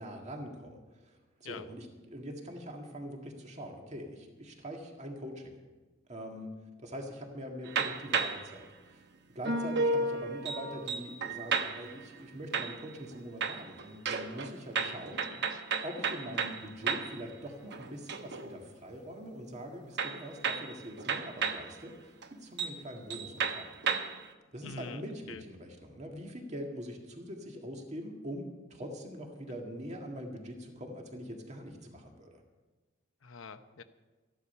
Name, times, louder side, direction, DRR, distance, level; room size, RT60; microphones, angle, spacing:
voice 1, 0.0-5.5 6.1-9.0 9.4-15.2 15.8-23.7 24.5-32.4, equal, 35° right, 2 dB, 1.9 m, -43 dB
sound 1, 7.6-8.5 9.4-12.0 12.5-13.1 13.4-17.2 17.6-18.5 20.0-21.7 22.2-22.3 22.6-22.8 23.1-24.3, right 4 dB, 60° right, 0.9 m, -33 dB
voice 2, 24.6-25.0 25.3-25.4 33.2-33.8, left 5 dB, 90° left, 10 dB, 0.8 m, -44 dB
13.5 x 11.5 x 5.6 m, 1.2 s
head